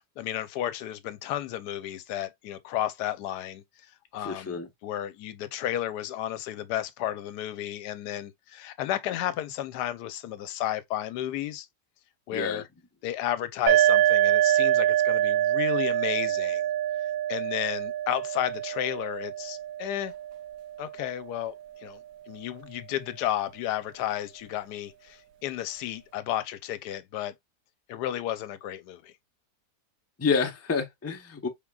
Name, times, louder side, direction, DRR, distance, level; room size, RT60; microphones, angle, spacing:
voice 1, 0.0-3.6 4.1-11.7 12.3-12.7 13.0-16.6 17.3-20.1 20.8-22.0 22.3-27.3 27.9-29.1, left 12 dB, 85° left, 1.2 m, -32 dB
voice 2, 4.2-4.7 12.3-12.6 30.2-31.5, left 5 dB, 20° left, 0.4 m, -28 dB
sound 1, 13.7-21.2, right 12 dB, 65° right, 1.0 m, -25 dB
5.0 x 3.6 x 2.3 m
omnidirectional pair, 1.7 m